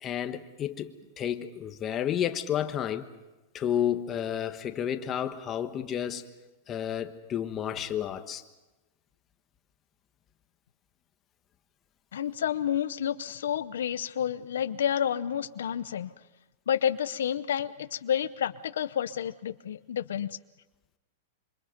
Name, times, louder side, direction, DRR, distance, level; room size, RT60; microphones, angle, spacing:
voice 1, 0.0-3.0 3.5-6.3 6.7-8.4, left 10 dB, 25° left, 1.3 m, -31 dB
voice 2, 12.1-16.1 16.7-20.4, left 9 dB, 90° left, 0.7 m, -30 dB
27.0 x 25.0 x 5.2 m
supercardioid pair, 150°, 0 cm